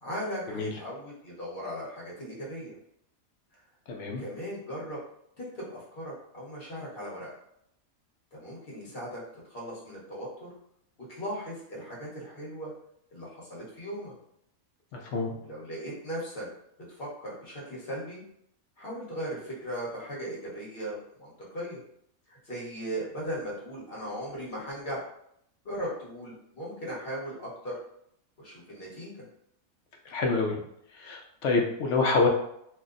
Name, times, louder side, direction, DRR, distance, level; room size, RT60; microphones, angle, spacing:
voice 1, 0.0-2.8 4.2-5.0 5.4-7.4 8.3-9.2 9.5-10.5 11.1-12.7 13.1-14.1 15.0-15.1 15.4-16.5 17.0-18.2 18.8-21.8 22.3-25.0 25.6-27.8 28.4-29.2, equal, 45° left, -5 dB, 1.2 m, -38 dB
voice 2, 3.9-4.2 14.9-15.3 30.1-30.6 31.0-32.3, left 3 dB, 65° left, 1 dB, 0.8 m, -26 dB
2.7 x 2.1 x 3.7 m, 0.73 s
omnidirectional pair, 1.5 m